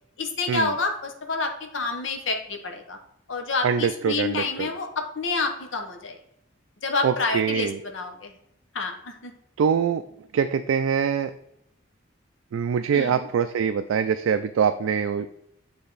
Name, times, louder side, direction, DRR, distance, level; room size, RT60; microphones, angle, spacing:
voice 1, 0.2-3.0 3.3-6.2 6.8-8.3 8.7-9.3 12.9-13.3, left 3 dB, 70° left, 4 dB, 0.9 m, -28 dB
voice 2, 3.6-4.7 7.0-7.8 9.6-10.0 10.3-11.3 12.5-15.3, right 7 dB, 80° right, 8 dB, 0.3 m, -24 dB
7.7 x 3.5 x 3.9 m, 0.77 s
head